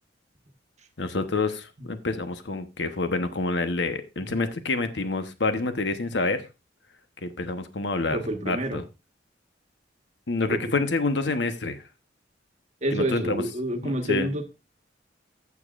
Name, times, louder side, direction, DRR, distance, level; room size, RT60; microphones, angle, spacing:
voice 1, 1.0-6.5 7.2-8.8 10.3-11.8 12.9-13.4 13.8-14.3, left 3 dB, 65° left, 9 dB, 1.0 m, -27 dB
voice 2, 8.1-8.8 10.5-10.6 12.8-14.4, right 1 dB, 40° right, 6 dB, 1.3 m, -28 dB
15.0 x 7.2 x 2.5 m, 0.27 s
head